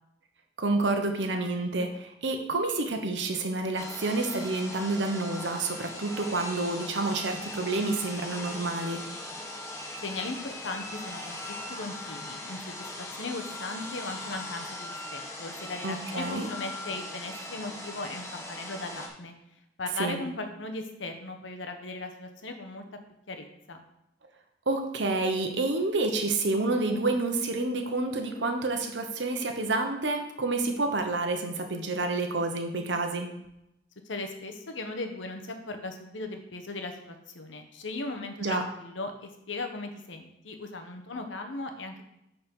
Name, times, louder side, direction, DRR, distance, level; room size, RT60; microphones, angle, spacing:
voice 1, 0.6-9.0 15.8-16.5 20.0-20.2 24.7-33.3 38.4-38.6, right 2 dB, 65° right, 5 dB, 1.0 m, -29 dB
sound 1, 3.8-19.1, left 1 dB, 15° left, 1.2 m, -40 dB
voice 2, 10.0-11.4 11.7-19.3 19.8-22.8 23.3-23.8 34.0-42.0, left 2 dB, 80° left, 5 dB, 1.1 m, -38 dB
9.0 x 4.2 x 5.4 m, 0.84 s
head